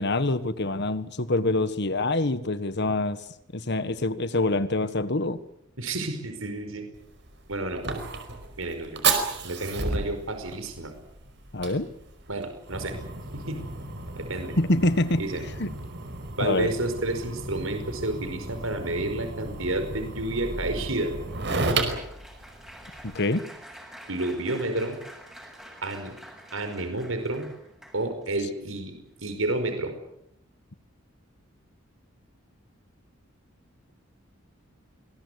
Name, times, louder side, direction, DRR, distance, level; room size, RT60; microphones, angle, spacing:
voice 1, 0.0-3.2 3.5-5.4 11.5-11.9 14.6-15.2 15.6-15.7 16.4-16.7 23.0-23.4, left 2 dB, 55° left, 13 dB, 1.6 m, -25 dB
voice 2, 5.8-6.9 7.5-7.8 8.6-9.0 9.4-10.9 12.3-13.0 13.3-13.6 14.2-14.5 15.2-15.4 16.4-21.2 24.1-25.0 25.8-26.1 26.5-27.5 27.9-29.9, right 2 dB, 80° right, 8 dB, 5.1 m, -30 dB
Fire, 6.9-23.1, right 3 dB, 60° right, 5.0 m, -33 dB
Applause, 20.4-28.3 29.0-29.2 29.5-29.7, equal, 5° right, 7.1 m, -48 dB
27.0 x 21.0 x 8.3 m, 0.75 s
head